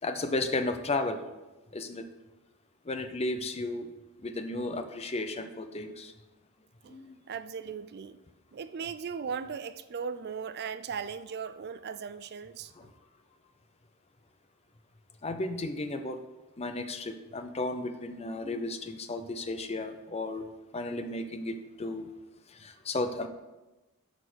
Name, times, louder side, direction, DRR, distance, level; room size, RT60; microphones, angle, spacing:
voice 1, 0.0-1.2 1.7-2.1 2.9-3.9 4.2-6.1 6.9-7.2 12.8-12.9 15.2-16.2 16.6-20.4 20.7-22.1 22.5-23.3, left 2 dB, 30° left, 8 dB, 0.6 m, -34 dB
voice 2, 7.3-8.2 8.5-12.9, right 6 dB, 45° right, 12 dB, 0.4 m, -38 dB
11.5 x 4.3 x 6.1 m, 1.1 s
head